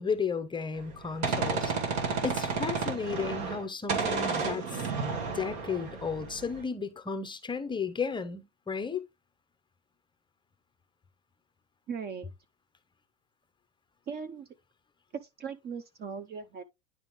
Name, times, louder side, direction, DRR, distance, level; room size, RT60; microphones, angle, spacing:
voice 1, 0.0-1.7 2.2-9.0, left 5 dB, 15° left, 0.7 m, -34 dB
Gunshot gunfire, 0.8-3.6 3.9-6.6, right 4 dB, 65° right, 2.2 m, -32 dB
voice 2, 11.9-12.3 14.1-14.5 15.1-16.6, right 6 dB, 30° right, 0.6 m, -39 dB
10.0 x 3.6 x 3.0 m
supercardioid pair, 120°, 34 cm